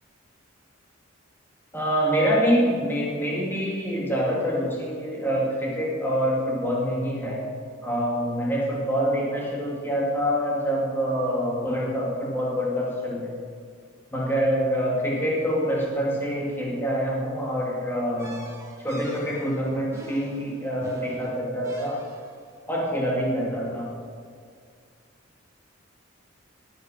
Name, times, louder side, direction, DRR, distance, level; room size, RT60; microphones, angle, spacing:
voice 1, 1.7-7.4 7.8-13.3 14.1-18.4 18.8-22.0 22.7-24.0, equal, 10° left, -4 dB, 2.2 m, -26 dB
sound 1, 18.2-22.5, right 1 dB, 15° right, 1.6 m, -44 dB
18.0 x 8.3 x 5.2 m, 2.1 s
head